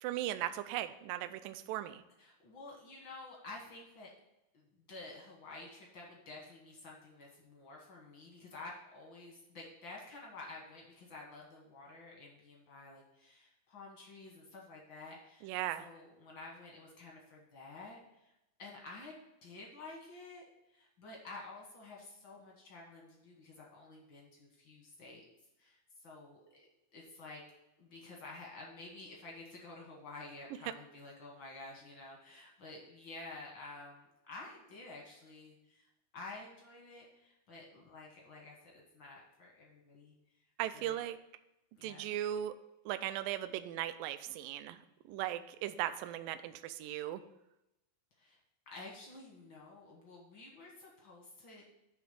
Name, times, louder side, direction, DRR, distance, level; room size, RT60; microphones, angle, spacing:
voice 1, 0.0-2.0 15.4-15.9 40.6-41.2 41.8-42.5 42.9-44.8 45.1-47.2, right 13 dB, 85° right, 11 dB, 2.0 m, -38 dB
voice 2, 2.2-4.1 4.5-18.3 18.6-20.4 20.7-25.2 25.6-26.7 26.9-27.4 27.8-35.9 36.1-40.1 40.7-41.0 41.8-42.1 48.2-48.4 48.7-51.6, left 3 dB, 70° left, -1 dB, 1.1 m, -51 dB
9.4 x 3.4 x 6.7 m, 0.89 s
omnidirectional pair, 4.2 m